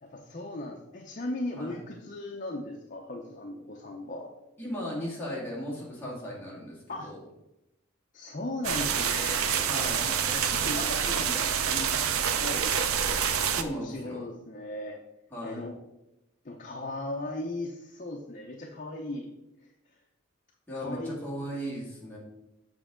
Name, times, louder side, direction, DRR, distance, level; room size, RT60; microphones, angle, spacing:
voice 1, 0.0-4.3 6.9-7.1 8.1-9.5 9.9-11.9 12.4-12.8 13.7-15.0 15.4-15.8 16.4-19.3 19.6-19.7 20.7-21.2, left 2 dB, 40° left, 0 dB, 0.6 m, -37 dB
voice 2, 4.6-7.2 9.7-10.1 13.5-14.3 15.3-15.6 20.7-22.2, equal, 10° left, -6 dB, 2.0 m, -37 dB
sound 1, 8.6-13.6, right 7 dB, 85° right, 0.6 m, -27 dB
7.5 x 5.4 x 3.7 m, 0.93 s
head